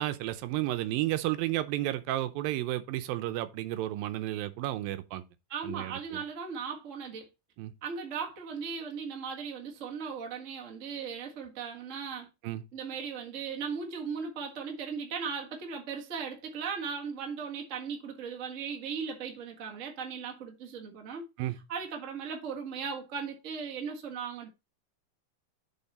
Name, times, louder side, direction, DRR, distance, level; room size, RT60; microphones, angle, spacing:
voice 1, 0.0-5.2 5.6-6.2 7.6-7.7 12.4-12.6 21.4-21.6, right 15 dB, 80° right, 2.4 m, -32 dB
voice 2, 5.5-7.3 7.8-12.3 12.7-21.3 21.7-24.5, right 6 dB, 45° right, 1.0 m, -37 dB
7.2 x 5.7 x 4.2 m
omnidirectional pair, 4.2 m